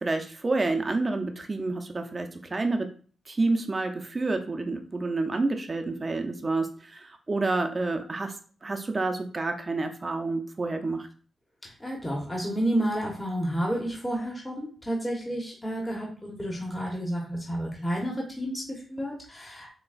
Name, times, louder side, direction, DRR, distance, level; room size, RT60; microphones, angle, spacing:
voice 1, 0.0-2.9 3.3-8.3 8.6-11.1, right 3 dB, 35° right, 5 dB, 0.6 m, -29 dB
voice 2, 11.8-19.7, right 1 dB, 15° left, -2 dB, 1.2 m, -30 dB
6.1 x 2.3 x 2.5 m, 0.41 s
cardioid pair, 60°, 0 cm